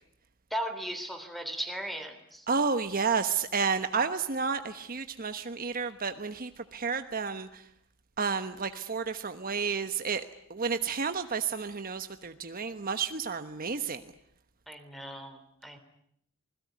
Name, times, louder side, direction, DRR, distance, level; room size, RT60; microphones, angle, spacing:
voice 1, 0.5-2.5 14.7-15.8, equal, ahead, 9 dB, 3.6 m, -37 dB
voice 2, 2.5-7.6 8.2-10.2 10.5-14.0, right 5 dB, 45° right, 9 dB, 1.2 m, -31 dB
28.0 x 21.0 x 9.5 m, 0.71 s
head